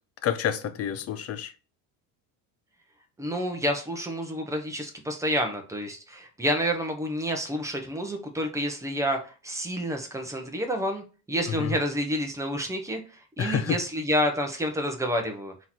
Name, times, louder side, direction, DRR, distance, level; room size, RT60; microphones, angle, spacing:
voice 1, 0.2-1.5 11.5-11.8 13.4-13.8, left 9 dB, 35° left, 0.4 m, -29 dB
voice 2, 3.2-13.0 13.4-15.5, equal, 5° right, 0.7 m, -29 dB
3.7 x 3.0 x 4.1 m
cardioid pair, 130°, 45 cm